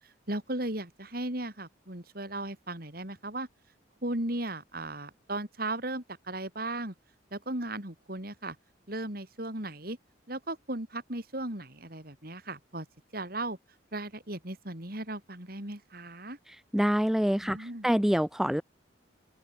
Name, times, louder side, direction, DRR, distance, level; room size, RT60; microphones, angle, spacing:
voice 1, 0.3-3.5 4.0-6.9 7.3-8.6 8.9-10.0 10.3-12.9 13.1-13.6 13.9-16.4 17.4-17.9, right 1 dB, 50° right, 4.3 m, -36 dB
voice 2, 16.5-18.6, equal, ahead, 0.3 m, -26 dB
open air
head